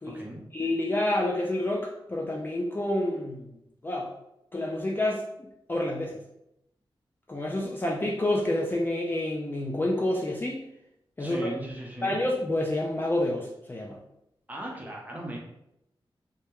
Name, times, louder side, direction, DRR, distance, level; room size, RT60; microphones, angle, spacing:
voice 1, 0.5-3.5 3.8-4.1 4.5-5.2 5.7-6.2 7.3-10.6 11.2-11.5 12.0-14.0, left 1 dB, 20° left, -2 dB, 0.3 m, -28 dB
voice 2, 11.2-12.2 14.5-15.4, right 1 dB, 15° right, -2 dB, 0.6 m, -37 dB
2.2 x 2.1 x 2.8 m, 0.81 s
wide cardioid pair, 90°, 10 cm